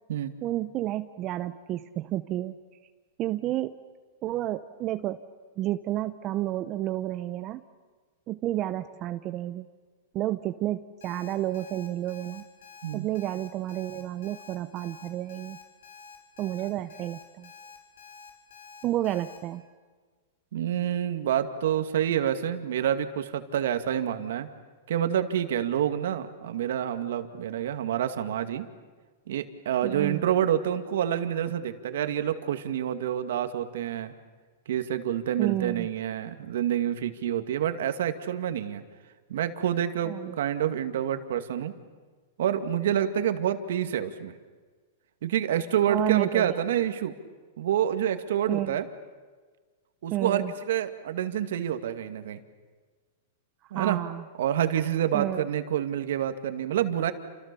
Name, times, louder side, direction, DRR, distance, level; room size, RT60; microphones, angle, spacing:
voice 1, 0.4-2.6 3.2-3.7 4.2-5.2 5.6-7.6 8.3-9.7 10.1-12.4 12.9-15.6 16.4-17.5 18.8-19.6 29.8-30.2 35.4-35.9 40.0-40.4 45.9-46.5 48.5-48.8 50.1-50.5 53.7-54.2 55.1-55.4, right 14 dB, 35° right, 10 dB, 0.9 m, -30 dB
Alarm, 11.0-19.4, left 5 dB, 85° left, 7.1 m, -49 dB
voice 2, 20.5-24.5 24.9-28.7 29.3-34.1 34.7-38.8 39.3-41.7 42.4-44.3 45.2-47.1 47.6-48.8 50.0-52.4 53.7-54.0 54.4-57.1, right 10 dB, 75° right, 8 dB, 2.2 m, -28 dB
29.5 x 28.0 x 7.0 m, 1.4 s
hypercardioid pair, 140°, 0 cm